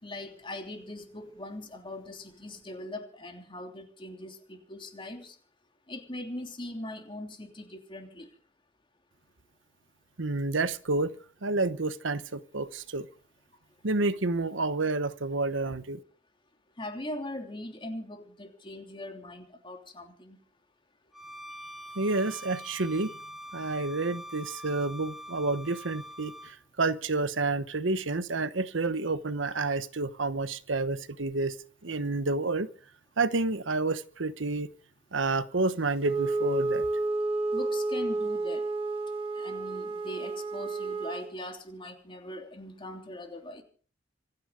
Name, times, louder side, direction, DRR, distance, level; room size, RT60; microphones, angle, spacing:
voice 1, 0.0-5.3 5.9-8.3 16.8-20.4 37.5-38.6 39.4-43.6, left 1 dB, 25° left, 3.1 m, -41 dB
voice 2, 10.2-11.1 11.4-13.1 13.8-16.0 22.0-23.2 23.5-31.5 31.8-32.7 33.2-34.7 35.1-36.9, right 3 dB, 85° right, 1.1 m, -29 dB
Bowed string instrument, 21.1-26.5, equal, ahead, 2.2 m, -44 dB
Wind instrument woodwind instrument, 36.0-41.3, right 2 dB, 30° right, 3.2 m, -30 dB
26.0 x 9.9 x 5.2 m
head